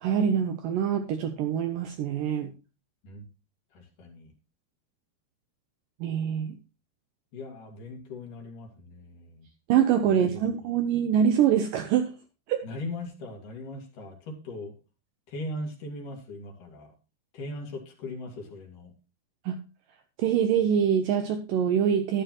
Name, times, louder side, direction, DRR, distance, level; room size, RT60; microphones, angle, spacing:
voice 1, 0.0-2.5 6.0-6.5 9.7-12.1 12.5-12.7 19.5-19.6 20.2-22.2, right 8 dB, 75° right, 7 dB, 2.1 m, -24 dB
voice 2, 3.7-4.3 7.3-9.5 10.1-10.8 12.6-14.7 15.3-16.9 17.3-18.9, left 2 dB, 55° left, 2 dB, 3.4 m, -39 dB
12.0 x 11.5 x 3.0 m, 0.30 s
omnidirectional pair, 4.7 m